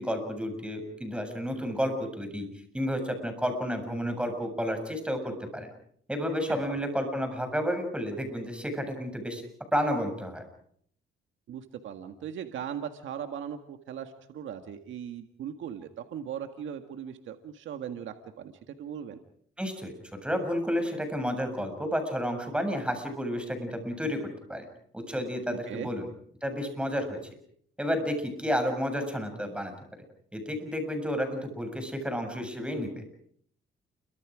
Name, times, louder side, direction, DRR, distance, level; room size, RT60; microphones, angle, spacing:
voice 1, 0.0-2.5 2.7-5.7 6.1-9.4 9.7-10.4 19.6-19.9 20.2-24.2 24.5-24.7 24.9-26.0 26.4-27.2 27.8-29.7 30.3-33.0, equal, 5° right, 6 dB, 7.5 m, -31 dB
voice 2, 11.5-19.2 25.5-25.9, right 9 dB, 75° right, 6 dB, 1.8 m, -39 dB
29.5 x 24.5 x 5.0 m, 0.65 s
cardioid pair, 90°, 20 cm